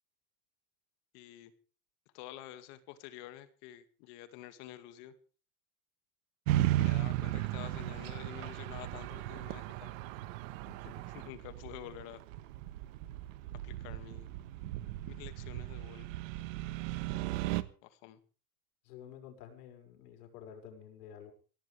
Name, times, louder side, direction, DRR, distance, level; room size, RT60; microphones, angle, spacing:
voice 1, 1.1-1.5 2.1-5.1 6.8-10.0 11.1-12.2 13.6-14.3 15.1-16.1 17.8-18.2, left 13 dB, 50° left, 11 dB, 2.2 m, -49 dB
sound 1, 6.5-17.6, right 15 dB, 60° right, 1.4 m, -36 dB
voice 2, 18.8-21.3, left 9 dB, 90° left, 5 dB, 6.1 m, -50 dB
22.5 x 17.5 x 3.4 m, 0.39 s
supercardioid pair, 175°, 45 cm